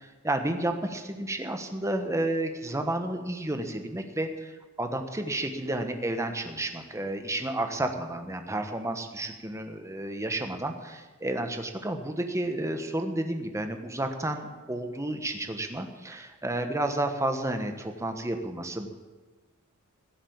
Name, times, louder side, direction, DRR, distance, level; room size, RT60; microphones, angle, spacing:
voice 1, 0.2-4.5 4.8-18.9, right 1 dB, 15° right, 6 dB, 1.2 m, -31 dB
16.0 x 7.2 x 8.7 m, 1.3 s
head